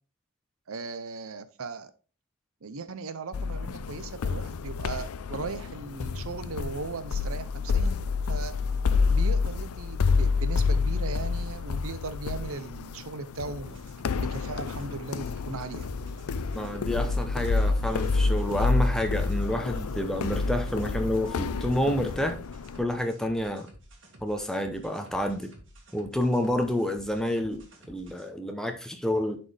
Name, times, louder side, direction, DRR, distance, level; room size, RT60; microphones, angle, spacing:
voice 1, 0.7-1.9 2.6-8.0 8.3-8.5 9.1-13.8 14.2-15.9, right 4 dB, 75° right, 0.7 m, -38 dB
sound 1, 3.3-22.8, left 4 dB, 85° left, 0.5 m, -28 dB
sound 2, 13.5-28.3, right 1 dB, 55° right, 2.0 m, -52 dB
voice 2, 16.5-22.4 22.8-23.7 24.2-25.5 25.9-29.4, left 1 dB, ahead, 0.7 m, -29 dB
11.0 x 4.3 x 3.3 m
head